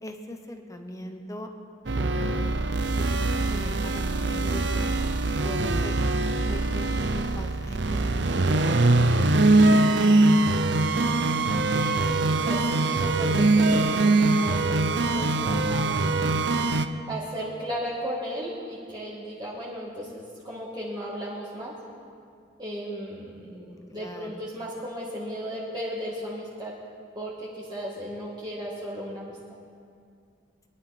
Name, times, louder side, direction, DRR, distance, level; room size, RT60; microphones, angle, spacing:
voice 1, 0.0-1.5 1.9-2.6 2.9-4.9 5.4-6.2 6.5-10.4 23.3-24.4, equal, 20° left, 5 dB, 1.0 m, -41 dB
sound 1, 1.9-16.9, right 2 dB, 75° right, 0.7 m, -23 dB
voice 2, 11.7-16.2 17.1-21.7 22.6-26.7 27.1-29.4, equal, 25° right, -7 dB, 2.1 m, -35 dB
22.0 x 11.5 x 4.3 m, 2.3 s
head